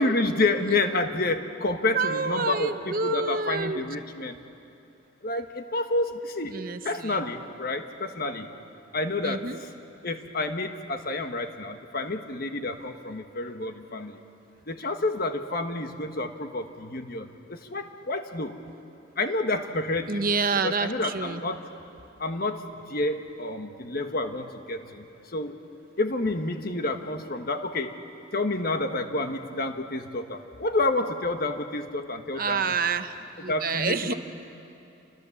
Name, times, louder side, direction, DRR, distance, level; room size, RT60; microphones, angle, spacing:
voice 1, 0.0-4.4 5.2-8.5 8.9-9.5 10.0-14.2 14.7-18.6 19.2-20.3 20.6-21.6 22.2-25.0 25.3-25.6 26.0-27.9 28.3-32.6 33.5-34.1, left 2 dB, 50° left, 6 dB, 1.5 m, -29 dB
voice 2, 1.9-3.8 6.5-7.2 9.2-9.6 20.1-21.4 32.4-34.1, right 4 dB, 45° right, 9 dB, 0.9 m, -28 dB
29.0 x 25.0 x 7.3 m, 2.7 s
head